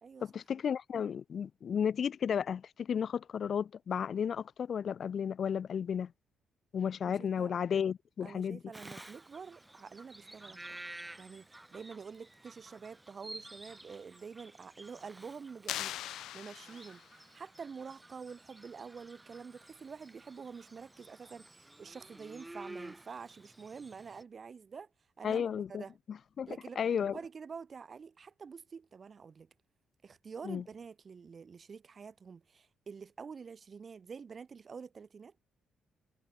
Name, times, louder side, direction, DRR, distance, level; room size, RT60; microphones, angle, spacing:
voice 1, 0.2-6.1 6.7-8.6 25.2-25.8 26.4-26.5 26.8-27.1 30.4-30.6, left 7 dB, 55° left, 0.3 m, -33 dB
voice 2, 7.0-7.5 8.2-10.8 11.2-16.0 16.3-24.9 25.2-26.0 26.5-29.5 30.0-35.3, right 5 dB, 40° right, 3.3 m, -47 dB
Bird vocalization bird call bird song, 8.7-24.2, right 2 dB, 10° right, 7.8 m, -52 dB
sound 1, 15.7-17.2, left 13 dB, 85° left, 1.5 m, -40 dB
cardioid pair, 90°, 0 cm